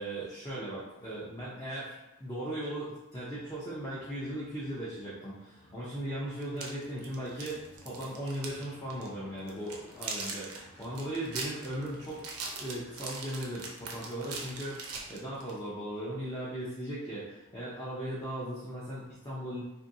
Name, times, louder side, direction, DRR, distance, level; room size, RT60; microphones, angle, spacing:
voice 1, 0.0-12.2 12.6-19.6, right 1 dB, 15° left, -8 dB, 0.5 m, -38 dB
sound 1, 3.1-14.7, left 1 dB, 50° left, 0.7 m, -58 dB
sound 2, 6.4-8.6 8.9-9.1 9.5-15.6, right 4 dB, 70° right, 0.5 m, -40 dB
2.6 x 2.6 x 2.6 m, 0.96 s
head